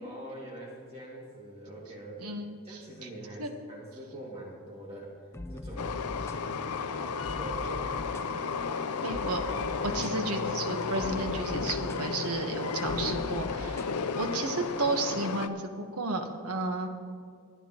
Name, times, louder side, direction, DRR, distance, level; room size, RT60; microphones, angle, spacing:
voice 1, 0.0-2.4 2.6-5.1 5.5-6.0 6.9-8.0, right 1 dB, 25° right, -4 dB, 2.2 m, -44 dB
voice 2, 2.2-3.1 3.4-3.5 9.0-9.6 9.8-16.9, right 2 dB, 85° right, 5 dB, 1.2 m, -33 dB
sound 1, 5.3-13.9, left 1 dB, 10° left, 0.3 m, -42 dB
Train, 5.8-15.5, left 5 dB, 90° left, 0.6 m, -33 dB
25.5 x 9.4 x 3.0 m, 2.1 s
head